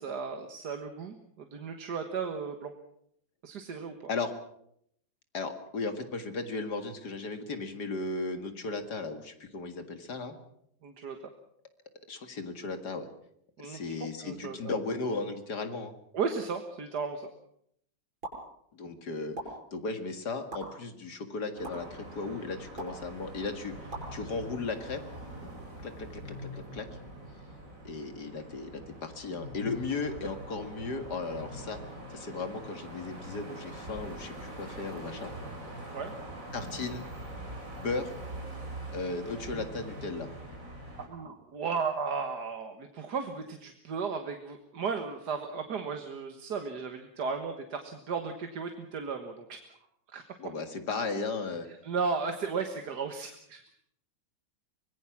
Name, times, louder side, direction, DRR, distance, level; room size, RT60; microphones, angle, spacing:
voice 1, 0.0-2.7 3.4-3.9 10.8-11.2 13.6-14.7 16.1-17.3 35.9-36.1 41.1-49.6 50.1-50.2 51.8-53.6, right 5 dB, 60° right, 6 dB, 2.0 m, -35 dB
voice 2, 5.3-10.3 12.1-13.1 13.6-15.9 18.7-19.4 19.7-25.0 25.8-26.9 27.8-31.8 32.1-35.3 36.5-37.0 37.8-38.1 38.9-40.3 50.4-51.7, left 3 dB, 55° left, 8 dB, 2.5 m, -36 dB
sound 1, 18.2-18.4 19.4-19.5 20.5-20.6 21.6-21.7 22.8-23.0 23.9-24.1, right 2 dB, 85° right, 6.9 m, -38 dB
sound 2, 21.6-41.1, right 1 dB, 40° right, 4.5 m, -43 dB
25.0 x 20.0 x 6.0 m, 0.70 s
omnidirectional pair, 2.1 m